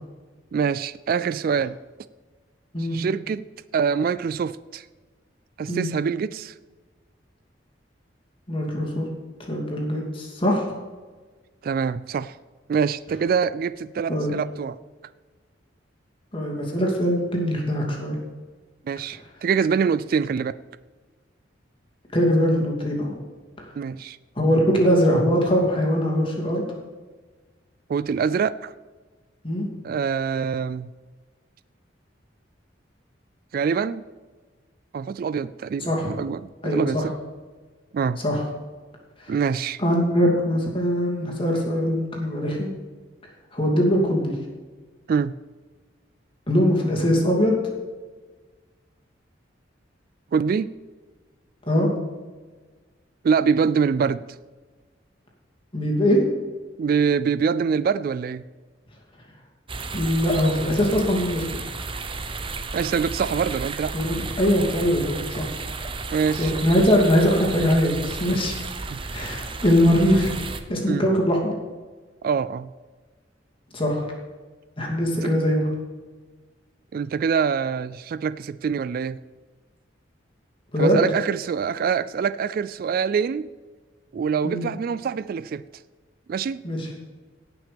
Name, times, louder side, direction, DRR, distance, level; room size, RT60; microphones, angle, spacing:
voice 1, 0.5-1.8 2.8-3.4 3.7-4.9 5.6-6.5 11.6-12.4 12.7-14.8 18.9-20.6 23.8-24.2 27.9-28.7 29.8-30.9 33.5-34.0 34.9-37.1 37.9-38.2 39.3-39.8 45.1-45.3 50.3-50.7 53.2-54.2 56.8-58.4 62.7-63.9 65.0-65.1 66.1-66.5 68.9-69.0 70.8-71.1 72.2-72.7 75.2-75.3 76.9-79.2 80.8-83.5 84.1-85.6 86.3-86.6, right 6 dB, 50° right, 15 dB, 0.3 m, -24 dB
voice 2, 8.5-9.1 9.5-10.7 14.1-14.3 16.3-18.2 22.1-23.1 24.4-26.6 29.4-29.7 35.9-36.1 36.6-37.1 38.2-38.4 39.2-39.3 39.8-42.7 43.5-44.3 46.5-47.6 51.7-51.9 55.7-56.2 59.9-61.6 63.9-65.4 66.4-68.5 69.1-70.3 70.7-71.5 73.7-74.0 74.8-75.7 80.7-81.0 84.4-84.7 86.6-86.9, equal, 30° left, -1 dB, 2.6 m, -21 dB
sound 1, 59.7-70.6, right 3 dB, 30° right, 0.8 m, -33 dB
17.5 x 6.1 x 5.2 m, 1.4 s
head